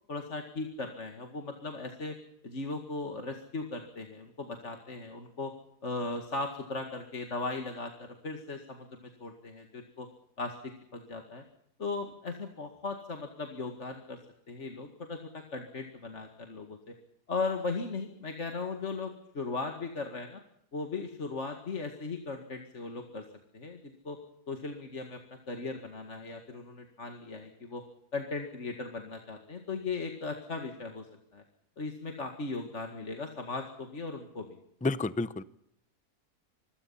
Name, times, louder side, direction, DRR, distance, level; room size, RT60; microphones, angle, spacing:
voice 1, 0.1-2.2 2.4-5.5 5.8-10.1 10.4-11.4 11.8-14.2 14.5-16.9 17.3-20.4 20.7-23.2 23.5-24.2 24.5-27.8 28.1-31.1 31.3-31.4 31.8-34.6, left 3 dB, 50° left, 4 dB, 2.3 m, -37 dB
voice 2, 34.8-35.4, left 3 dB, 10° left, 15 dB, 0.4 m, -30 dB
26.5 x 22.5 x 5.7 m, 0.74 s
omnidirectional pair, 1.6 m